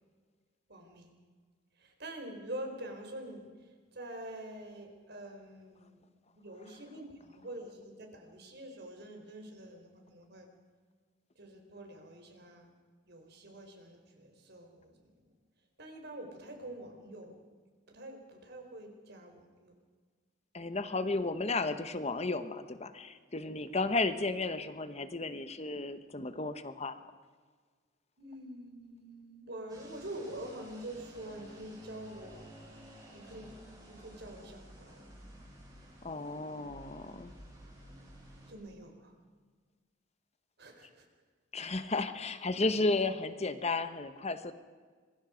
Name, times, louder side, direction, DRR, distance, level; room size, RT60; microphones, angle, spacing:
voice 1, 0.7-1.1 1.8-3.5 3.9-6.0 6.4-10.5 11.4-12.7 13.1-15.1 15.8-17.4 17.9-19.7 28.2-32.5 33.1-33.5 33.9-35.1 38.5-39.1 40.6-41.1 41.6-41.8, right 1 dB, 55° right, 4 dB, 4.4 m, -46 dB
voice 2, 20.5-27.0 36.0-37.3 41.5-44.5, left 3 dB, 35° left, 11 dB, 1.1 m, -33 dB
sound 1, 29.7-38.5, equal, 20° right, 6.3 m, -53 dB
26.5 x 21.5 x 5.1 m, 1.5 s
head